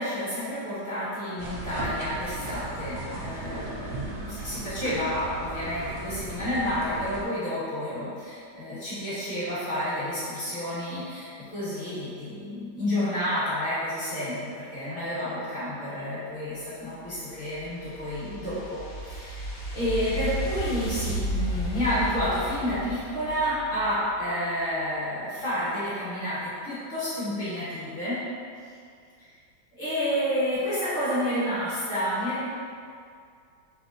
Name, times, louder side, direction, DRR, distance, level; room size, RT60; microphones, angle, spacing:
voice 1, 0.0-28.2 29.7-32.4, equal, 35° left, -13 dB, 1.1 m, -30 dB
sound 1, 1.4-7.2, right 2 dB, 80° right, 1.3 m, -36 dB
sound 2, 17.0-24.3, right 1 dB, 85° left, 1.4 m, -33 dB
4.5 x 2.0 x 2.5 m, 2.3 s
omnidirectional pair, 2.0 m